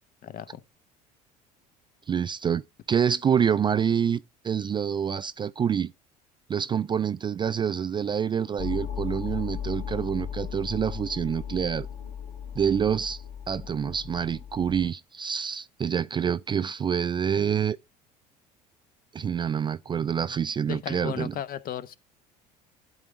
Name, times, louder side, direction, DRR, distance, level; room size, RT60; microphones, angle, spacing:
voice 1, 0.2-0.6 20.7-22.0, left 10 dB, 45° left, 0.8 m, -35 dB
voice 2, 2.1-2.6 2.9-5.9 6.5-11.9 12.6-17.8 19.1-21.3, right 7 dB, 20° right, 0.4 m, -27 dB
sound 1, 8.6-14.9, left 8 dB, 60° left, 3.3 m, -36 dB
12.0 x 4.0 x 4.9 m
figure-of-eight pair, 65°, 21 cm